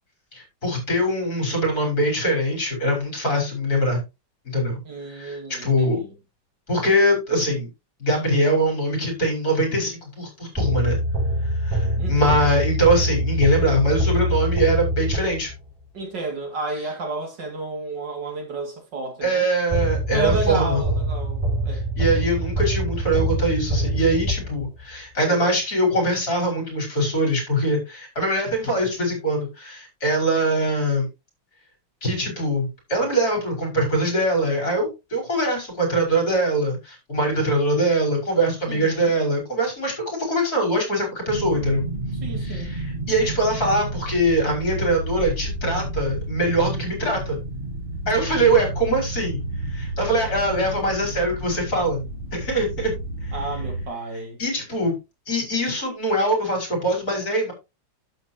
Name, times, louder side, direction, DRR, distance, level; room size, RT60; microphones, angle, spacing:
voice 1, 0.3-4.0 4.5-4.8 5.1-6.0 6.7-7.7 8.0-11.0 11.6-15.5 19.2-20.8 22.0-31.1 32.0-41.8 42.4-47.4 48.1-49.4 49.7-52.0 52.3-52.9 53.2-53.3 54.4-54.9 55.3-57.5, right 1 dB, 50° left, 5.8 m, -22 dB
voice 2, 4.8-6.1 12.0-12.5 15.9-19.4 20.1-21.8 38.7-39.1 42.2-42.7 48.0-48.1 53.3-54.4, right 3 dB, 70° right, 3.1 m, -31 dB
sound 1, 10.6-15.7 19.7-24.9, right 1 dB, 5° right, 6.8 m, -24 dB
sound 2, 41.3-53.9, right 1 dB, 30° right, 1.4 m, -31 dB
11.5 x 7.5 x 2.9 m
omnidirectional pair, 2.0 m